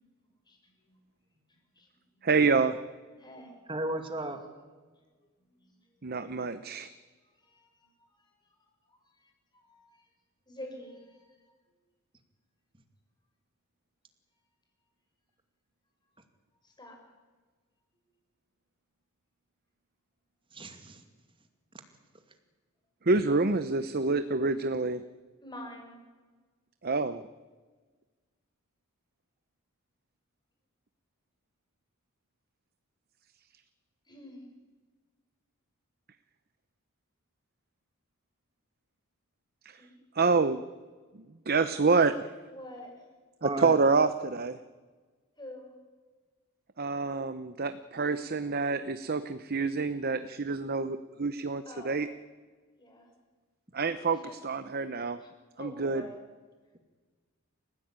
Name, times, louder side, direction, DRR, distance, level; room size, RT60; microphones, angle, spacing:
voice 1, 0.5-0.9 1.5-2.3 3.2-3.5 5.2-5.8 7.2-10.1 10.5-11.4 16.6-17.0 25.4-26.0 34.1-34.5 39.8-39.9 42.5-43.0 45.4-45.7 51.7-52.1 52.7-53.1 54.1-54.4 54.9-55.3 55.6-56.1, left 1 dB, 20° left, 2 dB, 6.2 m, -48 dB
voice 2, 2.2-2.8 6.0-6.9 23.0-25.0 26.8-27.2 39.6-39.9 40.1-40.6 41.1-42.3 43.4-44.6 46.8-52.1 53.7-55.2 55.6-56.0, right 4 dB, 45° right, 11 dB, 0.8 m, -27 dB
voice 3, 3.7-4.4 20.5-21.0 43.4-43.7, right 1 dB, 25° right, 7 dB, 2.4 m, -34 dB
29.0 x 15.5 x 8.9 m, 1.4 s
head